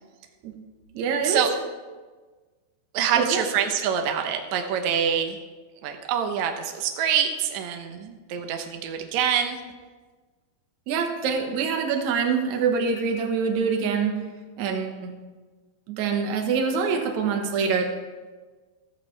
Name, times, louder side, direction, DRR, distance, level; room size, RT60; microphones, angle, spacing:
voice 1, 0.9-1.4 3.2-3.4 10.9-14.3 14.6-15.1 15.9-17.8, right 5 dB, 60° right, 3 dB, 2.2 m, -25 dB
voice 2, 2.9-5.4 5.8-9.6, right 8 dB, 85° right, 5 dB, 1.6 m, -25 dB
14.5 x 14.0 x 3.3 m, 1.3 s
omnidirectional pair, 4.6 m